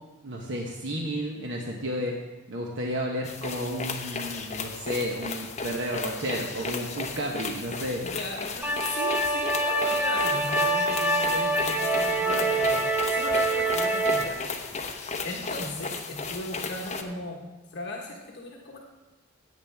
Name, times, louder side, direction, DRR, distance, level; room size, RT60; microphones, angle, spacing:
voice 1, 0.2-2.1 2.5-8.0, equal, 60° right, 0 dB, 1.1 m, -32 dB
sound 1, 3.2-17.0, left 4 dB, 35° left, 0.9 m, -35 dB
voice 2, 8.0-14.4 15.2-17.4 17.7-18.8, left 2 dB, 55° left, -2 dB, 1.5 m, -37 dB
sound 2, 8.6-14.3, right 2 dB, 10° right, 0.8 m, -25 dB
16.0 x 8.8 x 3.5 m, 1.1 s
head